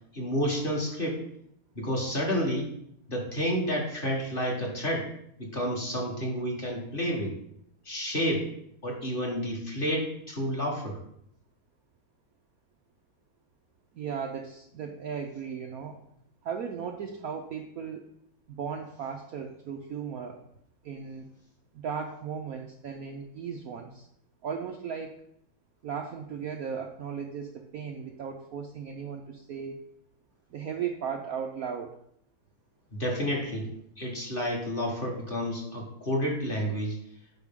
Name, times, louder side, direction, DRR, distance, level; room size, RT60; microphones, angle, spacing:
voice 1, 0.1-1.2 1.8-2.7 3.1-5.1 5.4-7.3 7.8-8.5 8.8-11.0 33.0-33.7 34.0-37.0, equal, 30° left, -1 dB, 1.4 m, -30 dB
voice 2, 13.9-16.0 16.4-18.1 18.5-20.4 20.8-21.3 21.7-24.1 24.4-25.2 25.8-29.8 30.5-31.9, right 7 dB, 85° right, 3 dB, 0.7 m, -36 dB
9.5 x 5.4 x 3.6 m, 0.72 s
omnidirectional pair, 2.3 m